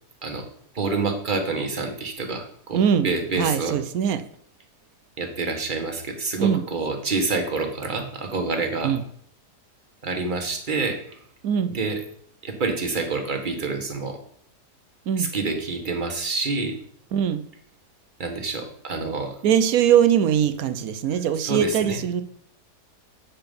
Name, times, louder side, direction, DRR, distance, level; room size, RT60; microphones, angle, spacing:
voice 1, 0.7-3.8 5.2-8.9 10.0-11.2 11.7-12.0 12.4-14.2 15.2-16.8 18.2-19.4 21.4-22.0, right 3 dB, 35° right, 4 dB, 1.3 m, -27 dB
voice 2, 2.7-3.1 3.4-4.2 6.4-6.6 8.8-9.0 11.4-11.8 15.1-15.3 17.1-17.4 19.4-22.2, right 8 dB, 70° right, 12 dB, 1.1 m, -21 dB
8.6 x 5.8 x 5.2 m, 0.63 s
omnidirectional pair, 1.7 m